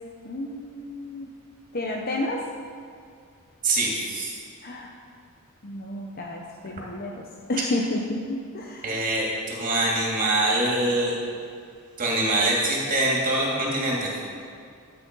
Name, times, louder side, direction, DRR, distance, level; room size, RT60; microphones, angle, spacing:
voice 1, 0.2-1.3 1.7-2.4 4.6-4.9 5.6-8.9, left 1 dB, 40° left, 0 dB, 0.8 m, -31 dB
voice 2, 3.6-4.3 7.6-7.7 8.8-11.1 12.0-14.1, right 2 dB, 40° right, -3 dB, 2.8 m, -24 dB
13.0 x 8.7 x 5.4 m, 2.3 s
head